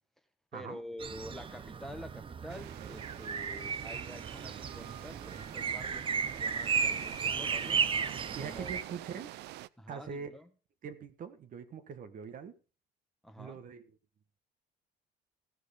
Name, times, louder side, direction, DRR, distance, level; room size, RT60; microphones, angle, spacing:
voice 1, 0.5-7.9 8.4-8.7 9.8-10.4 13.2-13.6, equal, ahead, 1.3 m, -47 dB
sound 1, 1.0-8.8, right 6 dB, 30° right, 0.7 m, -35 dB
sound 2, 2.5-9.7, right 16 dB, 80° right, 0.5 m, -46 dB
voice 2, 8.3-9.4 9.9-10.3 10.8-12.5 13.4-13.9, right 6 dB, 55° right, 1.4 m, -43 dB
15.5 x 6.4 x 5.1 m
cardioid pair, 110°, 17 cm